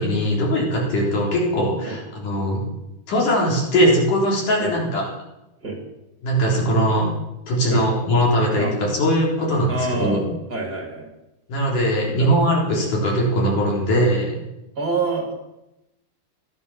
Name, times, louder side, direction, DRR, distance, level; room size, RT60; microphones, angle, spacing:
voice 1, 0.0-2.6 3.1-5.0 6.2-7.1 7.5-10.3 11.5-14.4, equal, 85° left, -2 dB, 5.5 m, -20 dB
voice 2, 9.7-10.2 10.5-11.1 12.2-12.4 14.8-15.3, right 3 dB, 30° right, 1 dB, 2.9 m, -27 dB
15.0 x 12.0 x 7.0 m, 0.93 s
omnidirectional pair, 3.5 m